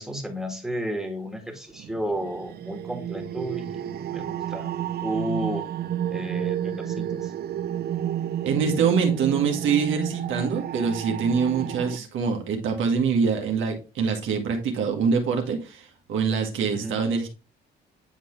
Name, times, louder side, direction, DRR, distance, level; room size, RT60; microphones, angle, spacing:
voice 1, 0.0-4.7 5.0-5.7 6.1-7.3 16.7-17.0, right 1 dB, ahead, 3 dB, 1.8 m, -32 dB
sound 1, 1.8-12.0, right 10 dB, 55° right, 0.4 m, -31 dB
voice 2, 8.4-17.3, right 5 dB, 80° right, 3 dB, 1.4 m, -25 dB
9.5 x 3.9 x 3.1 m, 0.32 s
cardioid pair, 90°, 20 cm